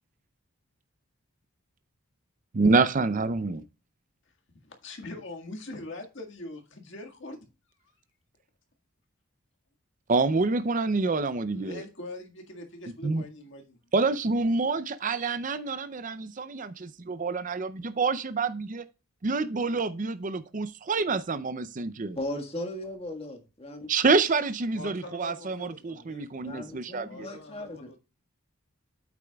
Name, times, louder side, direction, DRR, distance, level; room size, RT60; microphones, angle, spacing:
voice 1, 2.5-3.6 10.1-11.8 13.0-13.2 13.9-18.8 19.2-22.2 23.9-27.3, right 3 dB, 35° right, 0.5 m, -27 dB
voice 2, 4.6-7.5 10.4-10.5 11.5-13.8 24.7-26.6 27.1-28.0, left 2 dB, 55° left, 1.8 m, -43 dB
voice 3, 22.2-23.9 26.4-28.0, left 1 dB, 25° left, 1.5 m, -37 dB
8.6 x 8.2 x 2.3 m
head